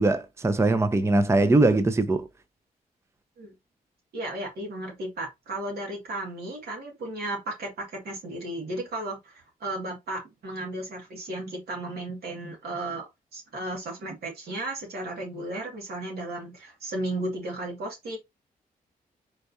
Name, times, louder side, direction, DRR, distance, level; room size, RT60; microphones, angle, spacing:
voice 1, 0.0-2.3, right 2 dB, 15° right, 0.6 m, -21 dB
voice 2, 4.1-18.2, right 1 dB, 85° right, 2.1 m, -34 dB
4.5 x 3.4 x 2.7 m
cardioid pair, 70°, 16 cm